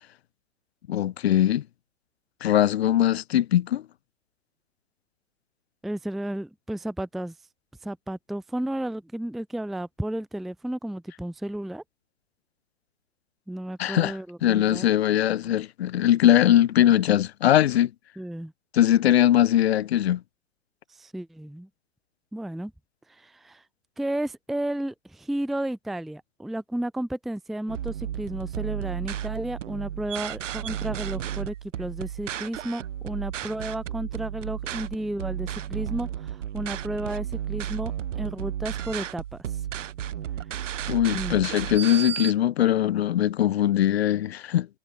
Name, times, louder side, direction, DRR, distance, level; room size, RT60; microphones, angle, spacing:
voice 1, 0.9-1.6 2.4-3.8 13.8-14.2 14.4-17.9 18.7-20.2 40.9-44.7, left 12 dB, 50° left, 0.9 m, -21 dB
voice 2, 5.8-7.3 7.8-11.8 13.5-14.9 18.2-18.5 21.0-21.7 22.3-22.7 23.1-23.6 24.0-39.4 41.1-41.4, right 1 dB, ahead, 0.8 m, -33 dB
sound 1, 27.7-42.3, right 10 dB, 65° right, 1.2 m, -33 dB
hypercardioid pair, 160°, 40 cm